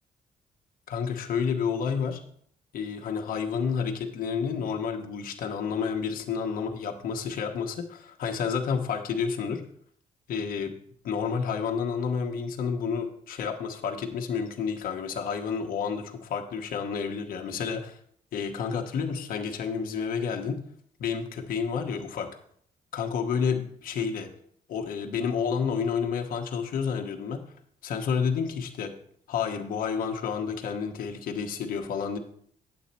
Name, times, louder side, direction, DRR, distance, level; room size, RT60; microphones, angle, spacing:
voice 1, 0.9-2.2 2.7-9.6 10.3-10.7 11.0-18.0 18.3-20.6 21.0-22.3 22.9-24.3 24.7-27.4 27.8-28.9 29.3-32.2, left 6 dB, 75° left, 3 dB, 1.1 m, -30 dB
9.2 x 7.9 x 4.2 m, 0.63 s
cardioid pair, 90°, 15 cm